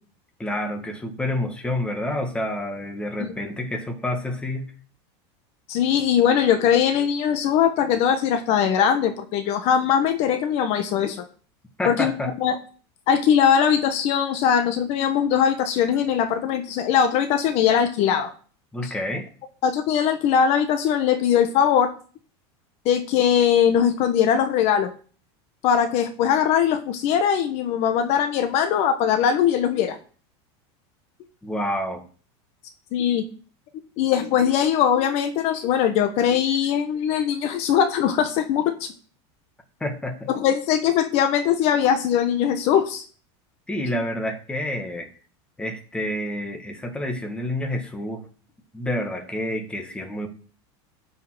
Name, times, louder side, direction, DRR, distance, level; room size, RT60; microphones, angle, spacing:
voice 1, 0.4-4.7 11.8-12.3 18.7-19.3 31.4-32.0 39.8-40.3 43.7-45.1 45.6-48.2 48.7-50.3, left 1 dB, 5° left, 1.9 m, -28 dB
voice 2, 5.7-11.2 11.9-12.1 12.4-12.6 13.1-18.3 18.8-18.9 19.6-21.9 22.8-24.9 25.6-30.0 32.9-33.2 34.0-38.9 40.3-43.0, left 8 dB, 50° left, 1.3 m, -21 dB
11.0 x 5.7 x 7.7 m
supercardioid pair, 145°, 14 cm